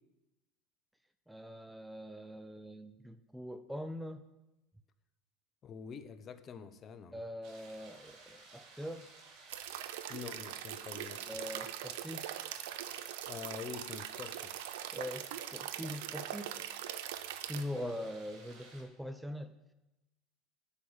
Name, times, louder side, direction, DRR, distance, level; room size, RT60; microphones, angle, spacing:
voice 1, 1.3-4.3 7.1-9.1 11.3-12.4 14.9-16.6 17.5-19.5, equal, 5° right, 11 dB, 0.5 m, -43 dB
voice 2, 5.6-7.2 10.1-11.2 13.3-14.6 17.8-18.1, left 6 dB, 35° left, 12 dB, 0.7 m, -46 dB
sound 1, 7.4-18.8, right 3 dB, 65° right, 2.9 m, -56 dB
sound 2, 9.5-17.6, right 11 dB, 80° right, 0.7 m, -42 dB
8.5 x 6.2 x 8.0 m, 0.98 s
supercardioid pair, 110°, 0 cm